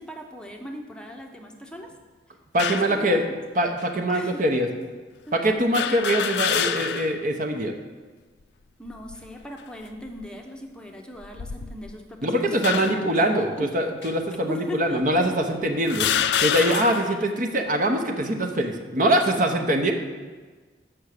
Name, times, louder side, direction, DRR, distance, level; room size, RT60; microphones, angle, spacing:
voice 1, 0.0-1.9 2.9-3.2 4.1-4.4 5.3-5.4 8.8-13.2 13.6-13.7 14.5-15.0 17.1-17.2, equal, 5° left, 1 dB, 0.7 m, -38 dB
voice 2, 2.5-3.3 3.6-4.7 5.3-7.7 12.2-16.1 16.4-19.9, right 1 dB, 50° right, 4 dB, 0.9 m, -23 dB
sound 1, 2.6-3.0 3.8-3.9 5.7-7.2 7.6-7.7 8.9-9.3 10.0-10.3 11.2-12.0 12.6-13.1 14.0-14.1 15.0-15.1 15.9-17.2, left 9 dB, 75° left, 0.4 m, -27 dB
8.0 x 6.0 x 6.5 m, 1.4 s
head